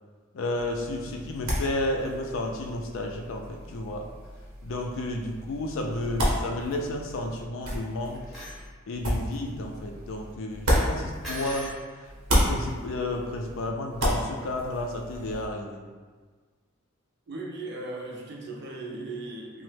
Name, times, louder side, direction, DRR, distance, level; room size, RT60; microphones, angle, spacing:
voice 1, 0.3-4.1 4.6-8.2 8.9-11.8 12.4-15.9, left 1 dB, 65° left, 2 dB, 0.3 m, -32 dB
sound 1, 0.6-11.7 12.0-15.5, equal, 80° right, 0.8 m, -32 dB
sound 2, 8.1-8.6 11.2-11.8, equal, ahead, 0.7 m, -38 dB
voice 2, 17.3-19.6, right 2 dB, 50° right, -1 dB, 0.4 m, -37 dB
3.0 x 2.0 x 3.2 m, 1.5 s
head